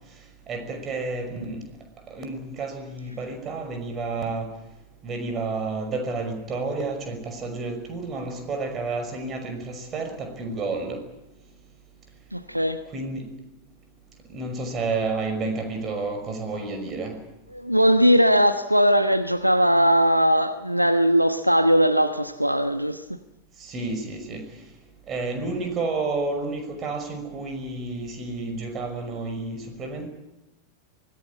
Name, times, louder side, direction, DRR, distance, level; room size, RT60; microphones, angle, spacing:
voice 1, 0.5-1.6 2.1-4.5 5.0-11.0 12.9-13.3 14.3-17.2 23.6-24.5 25.1-30.1, right 3 dB, 25° right, 5.8 m, -30 dB
voice 2, 12.3-12.8 17.5-23.0, equal, 90° right, 1.1 m, -19 dB
25.0 x 18.0 x 8.5 m
figure-of-eight pair, 90°, 0 cm